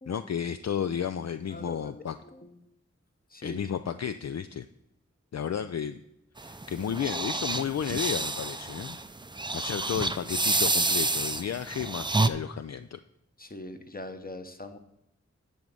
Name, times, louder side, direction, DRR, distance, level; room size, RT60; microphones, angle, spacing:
voice 1, 0.1-2.2 3.4-4.7 5.3-6.0 6.4-9.0 9.5-13.0, left 8 dB, 60° left, 10 dB, 0.4 m, -32 dB
voice 2, 1.5-2.7 3.3-3.7 13.4-14.8, left 1 dB, 30° left, 8 dB, 1.1 m, -43 dB
sound 1, 6.4-12.3, right 2 dB, 15° right, 0.5 m, -29 dB
10.5 x 4.0 x 7.6 m, 0.87 s
wide cardioid pair, 50°, 30 cm